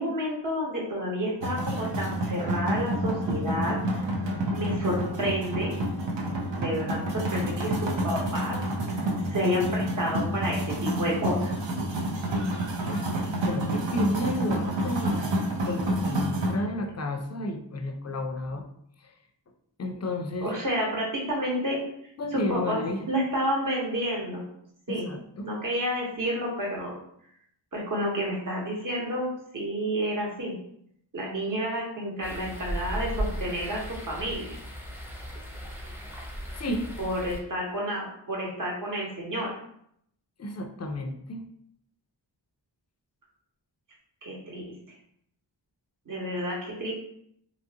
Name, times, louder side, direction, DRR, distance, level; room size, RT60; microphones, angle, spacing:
voice 1, 0.0-4.0 4.5-5.7 6.6-8.6 9.3-11.5 20.4-21.8 22.3-24.4 24.9-25.1 25.4-26.9 27.7-30.5 31.1-34.6 37.0-39.6 44.2-44.7 46.1-46.9, equal, 45° right, -3 dB, 1.0 m, -30 dB
sound 1, 1.4-16.5, right 1 dB, 75° right, 0.7 m, -29 dB
voice 2, 13.4-15.3 15.6-18.7 19.0-19.1 19.8-20.5 22.2-23.1 24.9-25.5 36.5-36.9 40.4-41.4, left 1 dB, 35° left, 5 dB, 0.4 m, -32 dB
sound 2, 32.2-37.4, equal, 5° right, 0.7 m, -36 dB
3.0 x 2.5 x 2.7 m, 0.70 s
wide cardioid pair, 50°, 45 cm